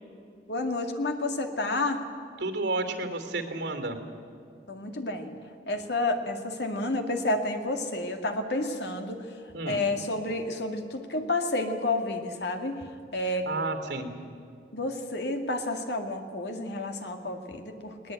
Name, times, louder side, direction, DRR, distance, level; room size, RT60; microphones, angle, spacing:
voice 1, 0.5-2.0 4.7-5.4 5.7-13.5 14.7-18.1, left 2 dB, 75° left, 5 dB, 2.2 m, -30 dB
voice 2, 2.4-4.0 9.5-9.8 13.5-14.1, right 2 dB, 85° right, 7 dB, 2.9 m, -31 dB
20.5 x 19.0 x 9.2 m, 2.4 s
head